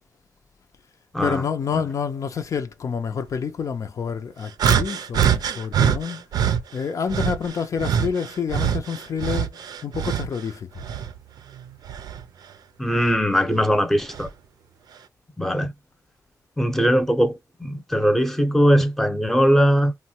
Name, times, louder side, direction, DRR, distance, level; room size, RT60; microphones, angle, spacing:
voice 1, 1.2-6.2 6.7-10.8, left 6 dB, 55° left, 0.5 m, -28 dB
sound 1, 4.6-6.6 7.1-10.4 10.8-12.2 13.0-13.2 14.1-14.3, right 8 dB, 85° right, 0.5 m, -24 dB
voice 2, 12.8-14.3 15.4-15.7 16.6-20.0, equal, 5° left, 0.6 m, -20 dB
3.0 x 2.2 x 2.8 m
wide cardioid pair, 115°, 6 cm